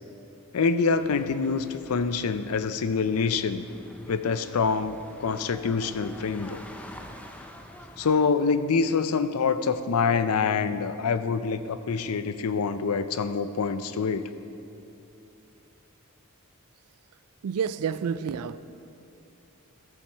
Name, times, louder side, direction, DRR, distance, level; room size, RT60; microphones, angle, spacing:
voice 1, 0.5-3.7 4.1-6.7 8.0-14.3, left 5 dB, 85° left, 0.5 m, -26 dB
sound 1, 1.0-8.3, left 1 dB, 5° left, 0.5 m, -47 dB
voice 2, 17.4-18.6, right 7 dB, 85° right, 0.3 m, -29 dB
14.0 x 7.1 x 4.6 m
head